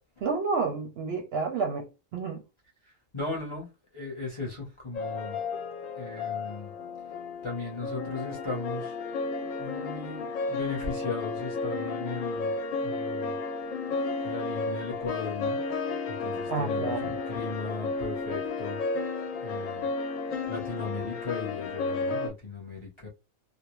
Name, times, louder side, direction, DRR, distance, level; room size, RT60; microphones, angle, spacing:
voice 1, 0.2-2.4 16.5-17.1, right 4 dB, 65° right, 0.7 m, -30 dB
voice 2, 2.8-5.4 6.0-6.7 7.4-9.0 9.6-12.5 12.8-13.4 14.2-15.6 16.1-18.8 19.4-19.9 20.5-23.1, left 3 dB, 30° left, 0.6 m, -37 dB
sound 1, 4.9-22.3, left 3 dB, 90° left, 1.0 m, -33 dB
2.4 x 2.0 x 3.0 m
omnidirectional pair, 1.3 m